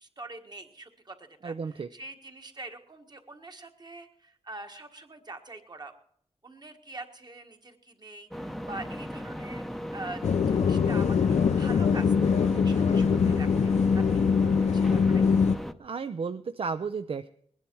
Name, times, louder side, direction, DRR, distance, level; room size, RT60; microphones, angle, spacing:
voice 1, 0.0-5.9 6.4-10.2 10.5-13.5 14.4-15.2, right 2 dB, 35° right, 5 dB, 1.6 m, -44 dB
voice 2, 1.4-1.9 12.9-13.2 15.8-17.3, right 5 dB, 55° right, 10 dB, 0.5 m, -33 dB
sound 1, 8.3-15.7, equal, ahead, 0.7 m, -37 dB
sound 2, 10.2-15.6, left 6 dB, 80° left, 0.6 m, -23 dB
20.5 x 10.0 x 4.6 m, 0.65 s
wide cardioid pair, 100°, 11 cm